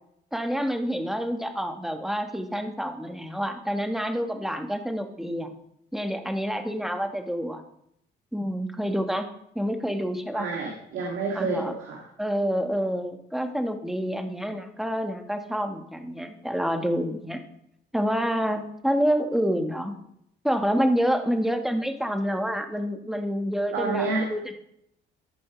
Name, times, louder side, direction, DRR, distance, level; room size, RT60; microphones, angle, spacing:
voice 1, 0.3-5.5 5.9-7.6 8.3-9.3 9.5-10.5 11.3-11.7 12.2-17.4 17.9-19.9 20.4-24.5, equal, ahead, 6 dB, 1.2 m, -28 dB
voice 2, 10.3-12.0 23.7-24.3, right 3 dB, 85° right, 0 dB, 2.0 m, -29 dB
13.5 x 5.0 x 6.0 m, 0.75 s
cardioid pair, 90°, 20 cm